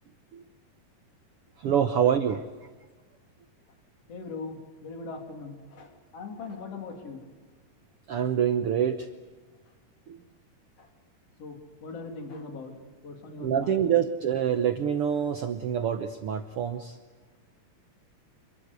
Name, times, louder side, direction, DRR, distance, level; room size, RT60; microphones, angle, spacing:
voice 1, 1.6-2.4 8.1-9.1 10.1-10.2 13.4-17.0, right 8 dB, 75° right, 8 dB, 1.3 m, -26 dB
voice 2, 4.1-7.3 10.8-10.9 11.4-13.9, left 4 dB, 50° left, 3 dB, 3.9 m, -40 dB
27.5 x 22.5 x 8.3 m, 1.4 s
omnidirectional pair, 3.8 m